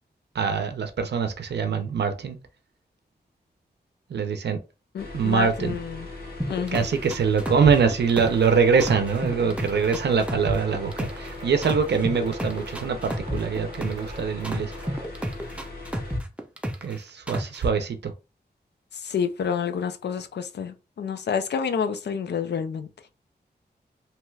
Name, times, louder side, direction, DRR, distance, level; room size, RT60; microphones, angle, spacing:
voice 1, 0.3-2.4 4.1-4.6 5.1-5.8 6.7-14.7 16.8-18.1, right 6 dB, 90° right, 0.5 m, -23 dB
voice 2, 4.9-6.1 6.5-6.8 19.0-22.9, left 7 dB, 85° left, 0.4 m, -28 dB
sound 1, 5.0-16.2, left 2 dB, 60° left, 1.0 m, -39 dB
sound 2, 6.4-8.5 8.8-11.3 11.6-14.1 14.4-16.9 17.3-17.6, equal, 5° right, 0.5 m, -30 dB
sound 3, 8.2-15.0, right 1 dB, 40° right, 0.7 m, -44 dB
2.9 x 2.3 x 3.1 m
wide cardioid pair, 110°, 17 cm